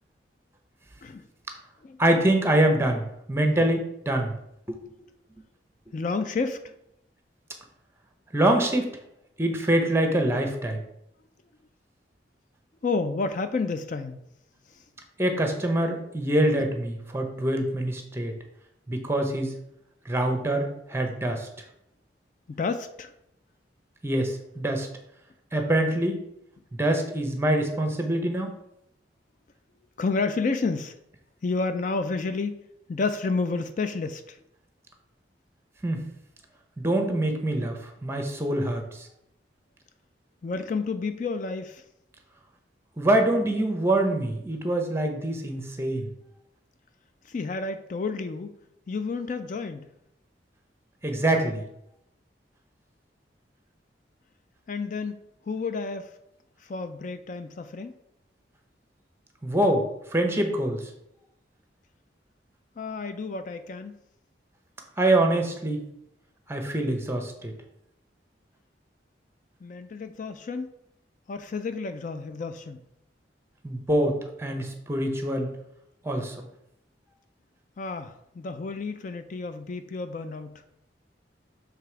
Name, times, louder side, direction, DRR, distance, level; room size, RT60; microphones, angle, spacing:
voice 1, 2.0-4.3 4.7-4.8 5.4-5.5 8.3-9.0 9.4-10.8 15.2-18.3 18.9-19.5 20.1-21.5 24.0-24.9 25.5-26.2 26.7-28.5 35.8-36.0 36.8-37.7 38.0-38.8 43.0-46.1 51.0-51.6 59.4-59.8 60.1-60.8 65.0-65.8 66.5-67.5 73.6-75.5 76.0-76.3, right 1 dB, 15° right, 4 dB, 0.8 m, -25 dB
voice 2, 5.9-6.6 12.8-14.2 22.5-23.1 30.0-31.0 31.4-32.6 32.9-34.4 40.4-41.8 47.3-48.5 48.9-49.9 54.7-55.2 55.5-56.1 56.6-57.9 62.8-63.9 69.6-70.7 71.3-72.8 77.8-80.5, left 4 dB, 45° left, 10 dB, 0.4 m, -30 dB
6.9 x 3.4 x 4.6 m, 0.79 s
head